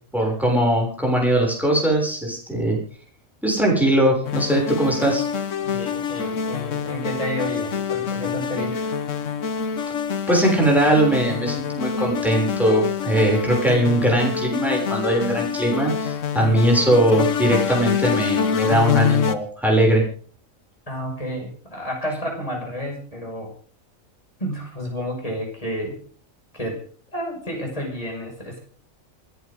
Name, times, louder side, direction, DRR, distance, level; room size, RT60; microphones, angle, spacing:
voice 1, 0.1-2.8 3.4-5.2 10.3-20.0, right 1 dB, ahead, -1 dB, 6.7 m, -20 dB
sound 1, 4.2-19.3, left 7 dB, 65° left, 1.4 m, -25 dB
voice 2, 5.6-8.9 20.9-23.5 24.4-26.0 26.5-26.8 27.1-28.6, equal, 25° left, 0 dB, 6.0 m, -30 dB
29.0 x 11.0 x 3.8 m, 0.42 s
omnidirectional pair, 1.4 m